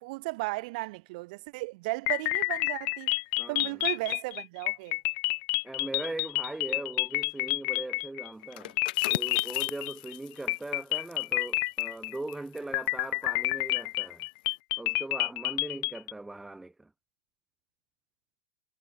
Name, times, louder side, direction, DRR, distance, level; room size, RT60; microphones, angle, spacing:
voice 1, 0.0-3.1 3.5-5.0, right 24 dB, 65° right, 1.2 m, -35 dB
sound 1, 2.1-8.5 8.8-10.2 10.5-12.3 12.7-16.1, left 31 dB, 50° left, 0.4 m, -29 dB
voice 2, 3.4-3.8 5.6-8.8 9.1-14.3 14.8-16.9, right 2 dB, 5° right, 1.7 m, -40 dB
sound 2, 8.4-13.9 14.3-14.5, left 17 dB, 80° left, 2.1 m, -42 dB
supercardioid pair, 145°, 5 cm